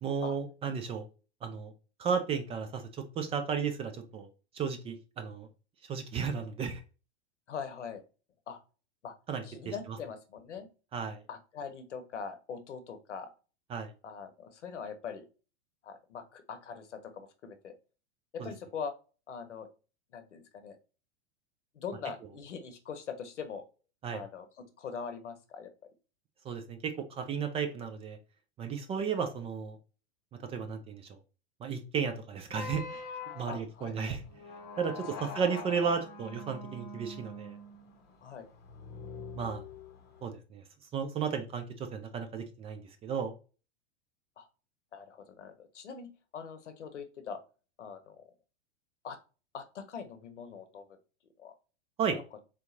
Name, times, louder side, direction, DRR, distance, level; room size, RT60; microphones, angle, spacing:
voice 1, 0.0-1.1 1.4-1.7 2.0-2.8 3.2-4.3 4.5-5.5 5.9-6.8 9.3-9.7 10.9-11.2 13.7-13.9 18.4-18.5 24.0-24.2 26.4-28.2 28.6-29.8 30.5-31.1 31.6-33.0 33.3-34.2 34.8-37.6 39.4-39.6 40.2-40.6 40.9-43.3 52.0-52.2, right 6 dB, 20° right, 7 dB, 0.3 m, -34 dB
voice 2, 7.5-8.0 8.5-8.6 9.0-9.1 9.4-10.7 11.3-13.3 14.0-15.2 15.8-17.7 18.3-18.9 19.3-19.7 20.1-20.8 21.7-23.6 24.1-25.7 33.5-34.2 38.2-38.5 44.4-44.5 44.9-47.4 47.8-48.2 49.0-49.2 49.5-50.8 51.4-51.5 52.1-52.2, left 6 dB, 90° left, 9 dB, 0.8 m, -42 dB
sound 1, 32.5-40.3, left 3 dB, 30° left, 0.9 m, -44 dB
3.8 x 2.8 x 2.6 m, 0.33 s
hypercardioid pair, 110°, 34 cm